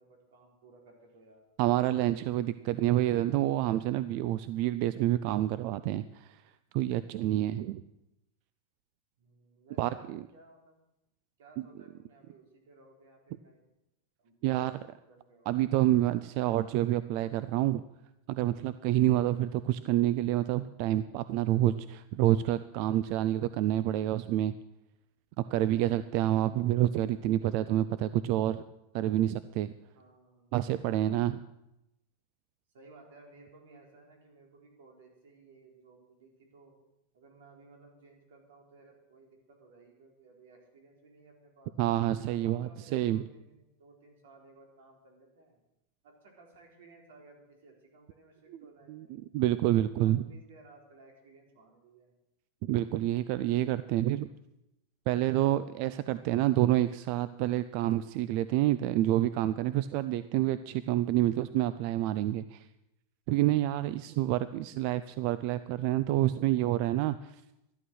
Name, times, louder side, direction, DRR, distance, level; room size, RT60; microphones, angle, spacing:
voice 1, 0.0-1.5 9.2-10.8 11.4-13.6 14.2-15.5 29.9-30.6 32.7-36.8 37.1-41.8 42.2-45.6 46.0-49.1 49.8-52.1, right 3 dB, 75° right, 1 dB, 4.2 m, -57 dB
voice 2, 1.6-6.4 6.7-7.8 9.8-10.2 14.4-14.8 15.5-17.8 18.3-24.6 25.5-28.6 28.9-29.7 30.5-31.4 41.8-43.2 48.9-49.0 49.3-50.2 52.6-54.3 55.1-62.6 63.3-67.3, right 14 dB, 40° right, 14 dB, 0.4 m, -28 dB
13.0 x 11.5 x 6.3 m, 0.89 s
supercardioid pair, 175°, 0 cm